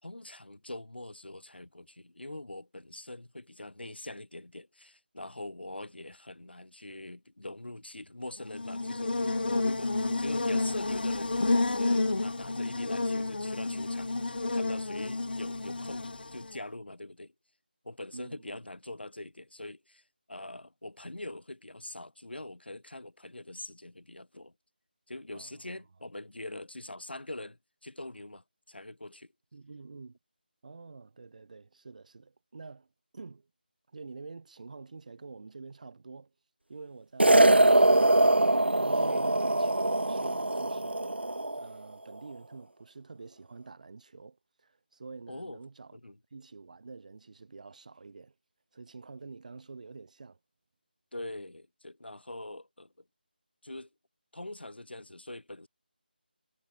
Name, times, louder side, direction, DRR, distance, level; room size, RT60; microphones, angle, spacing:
voice 1, 0.0-9.9 10.2-17.3 17.8-20.0 20.3-24.5 25.1-29.3 39.0-39.3 45.3-45.6 45.9-46.2 51.1-52.9 53.6-53.9 54.3-55.7, left 1 dB, 80° left, 5.8 m, -43 dB
Buzz, 8.4-16.6, left 2 dB, 65° left, 2.9 m, -30 dB
voice 2, 18.1-18.6 25.3-25.8 29.5-30.2 30.6-33.5 33.9-36.3 36.7-39.7 40.0-41.0 41.5-46.0 46.3-48.3 48.7-50.4, right 4 dB, 45° right, 6.6 m, -48 dB
sound 1, 37.2-41.7, right 1 dB, 85° right, 1.1 m, -23 dB
figure-of-eight pair, 165°, 6 cm